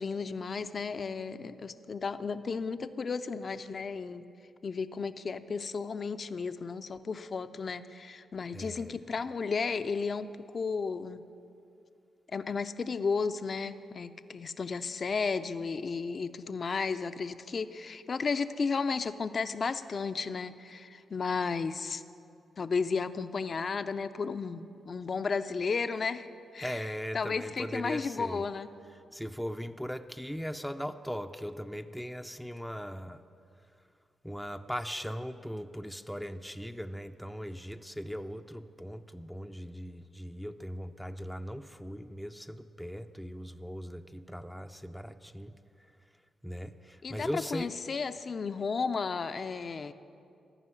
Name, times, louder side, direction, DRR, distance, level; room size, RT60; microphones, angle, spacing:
voice 1, 0.0-4.2 4.6-11.2 12.3-22.0 22.6-28.7 47.0-49.9, left 5 dB, 50° left, 11 dB, 0.5 m, -33 dB
voice 2, 8.5-9.0 26.6-28.4 29.1-33.2 34.2-45.9 46.4-47.7, equal, ahead, 6 dB, 0.5 m, -39 dB
14.0 x 5.5 x 9.6 m, 2.5 s
supercardioid pair, 50°, 0 cm